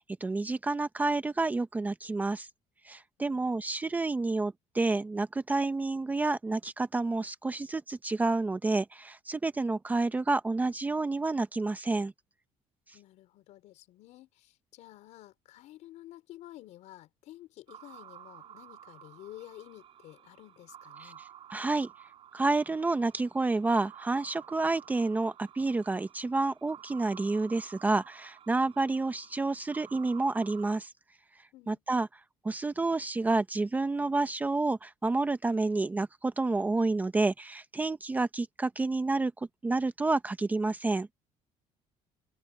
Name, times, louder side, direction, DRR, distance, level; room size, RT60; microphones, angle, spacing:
voice 1, 0.0-2.5 2.9-12.1 21.0-21.1 21.5-21.9 22.3-30.9 31.7-32.1 32.4-41.1, right 3 dB, 15° right, 0.7 m, -29 dB
voice 2, 12.9-21.2 31.5-31.8, left 15 dB, 65° left, 4.9 m, -51 dB
sound 1, 17.7-30.8, right 10 dB, 45° right, 6.1 m, -52 dB
cardioid pair, 155°, 13 cm